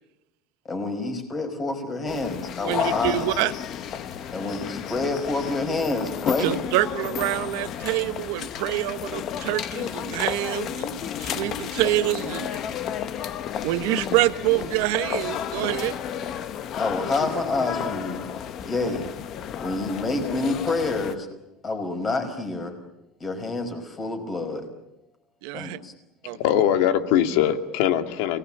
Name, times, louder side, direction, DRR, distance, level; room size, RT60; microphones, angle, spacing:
voice 1, 0.6-3.2 4.3-6.5 16.8-18.2 18.6-19.1 19.6-21.3 21.6-22.7 23.2-24.6 25.5-25.9, left 3 dB, 20° left, 6 dB, 5.2 m, -28 dB
sound 1, 2.1-21.2, left 9 dB, 40° left, 1.3 m, -32 dB
voice 2, 2.6-3.5 6.4-12.6 13.6-15.9 25.4-25.8 26.2-26.4, right 17 dB, 90° right, 12 dB, 1.2 m, -26 dB
voice 3, 26.3-28.4, left 10 dB, 85° left, 8 dB, 2.4 m, -21 dB
29.5 x 20.0 x 8.7 m, 0.94 s
cardioid pair, 170°, 0 cm